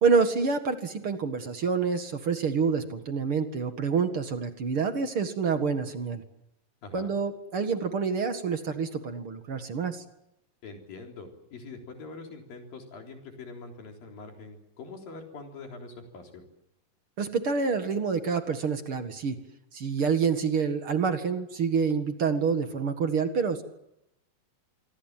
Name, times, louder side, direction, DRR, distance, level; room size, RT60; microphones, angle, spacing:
voice 1, 0.0-6.2 6.9-10.0 17.2-19.4 19.7-23.6, right 5 dB, 45° right, 8 dB, 2.2 m, -27 dB
voice 2, 6.8-7.1 10.6-16.4, left 3 dB, 75° left, 2 dB, 5.6 m, -44 dB
27.0 x 23.0 x 7.5 m, 0.83 s
omnidirectional pair, 4.1 m